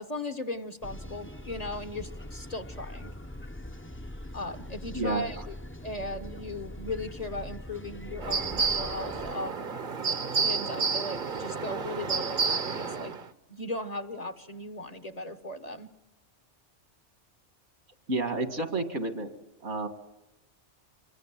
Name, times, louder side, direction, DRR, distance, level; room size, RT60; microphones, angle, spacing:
voice 1, 0.0-3.1 4.3-5.5 5.8-9.7 10.3-13.2 13.5-15.9, left 2 dB, 35° left, 9 dB, 1.1 m, -37 dB
sound 1, 0.8-9.3, left 1 dB, 10° left, 0.8 m, -42 dB
sound 2, 8.2-13.3, right 5 dB, 45° right, 1.1 m, -30 dB
voice 2, 18.1-19.3 19.6-19.9, right 2 dB, 75° right, 9 dB, 2.5 m, -30 dB
25.5 x 23.0 x 7.5 m, 0.97 s
omnidirectional pair, 1.2 m